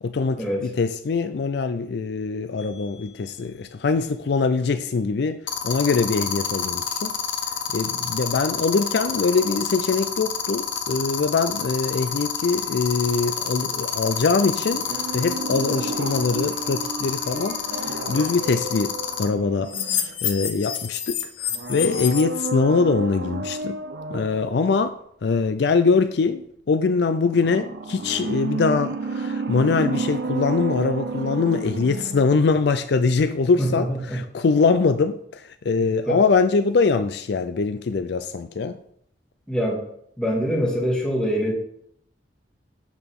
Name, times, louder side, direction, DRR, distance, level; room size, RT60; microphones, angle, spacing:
voice 1, 0.0-7.1 7.7-14.9 15.1-23.8 24.1-25.0 25.2-38.8, left 4 dB, 60° left, 0.4 m, -23 dB
sound 1, 2.6-2.9 5.5-19.2 19.7-22.2, left 9 dB, 90° left, 1.0 m, -27 dB
sound 2, 14.7-20.4 21.5-24.5 27.3-32.5 32.8-32.9, right 3 dB, 60° right, 0.6 m, -31 dB
voice 2, 33.6-34.2 36.1-36.2 39.5-39.8 40.2-41.5, equal, 5° left, 2.0 m, -24 dB
8.8 x 6.1 x 3.7 m
head